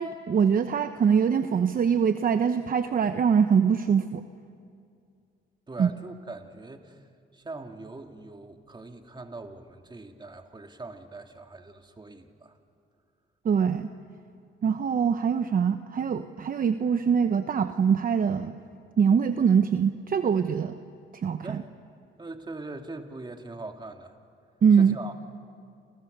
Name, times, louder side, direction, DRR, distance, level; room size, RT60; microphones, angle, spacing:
voice 1, 0.0-4.2 5.8-5.9 13.4-13.9 14.6-18.5 19.0-20.8 21.1-21.6 24.6-24.9, right 7 dB, 45° right, 9 dB, 1.0 m, -23 dB
voice 2, 5.7-7.1 7.3-12.6 21.4-21.7 22.2-24.2 24.8-25.1, right 2 dB, 20° right, 4 dB, 2.4 m, -41 dB
29.0 x 28.0 x 6.8 m, 2.4 s
cardioid pair, 90°, 20 cm